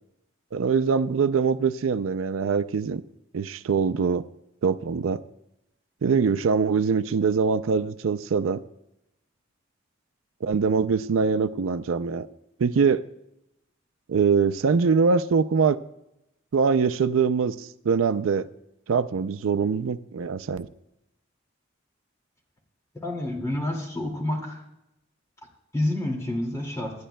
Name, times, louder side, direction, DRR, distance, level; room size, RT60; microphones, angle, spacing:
voice 1, 0.5-3.0 3.3-4.2 4.6-5.2 6.0-8.6 10.4-12.3 12.6-13.0 14.1-15.8 16.5-18.5 18.9-20.7, right 5 dB, 85° right, 13 dB, 0.4 m, -23 dB
voice 2, 22.9-24.6 25.7-26.9, left 1 dB, 15° left, 0 dB, 2.2 m, -28 dB
25.5 x 10.0 x 2.2 m, 0.86 s
head